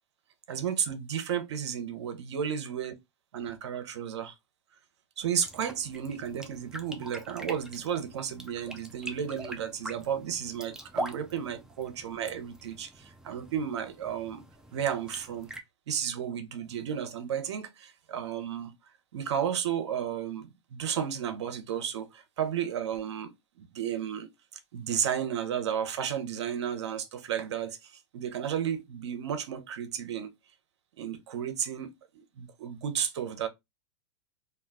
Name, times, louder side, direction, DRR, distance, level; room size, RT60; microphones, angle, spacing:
voice 1, 0.5-2.9 3.3-4.3 5.2-14.4 14.7-15.5 15.9-18.7 19.1-24.3 24.7-30.3 31.0-31.9 32.4-33.5, right 8 dB, 75° right, 0.7 m, -33 dB
sound 1, 5.4-15.6, right 1 dB, 5° right, 0.4 m, -43 dB
2.4 x 2.2 x 3.4 m
hypercardioid pair, 110°, 15 cm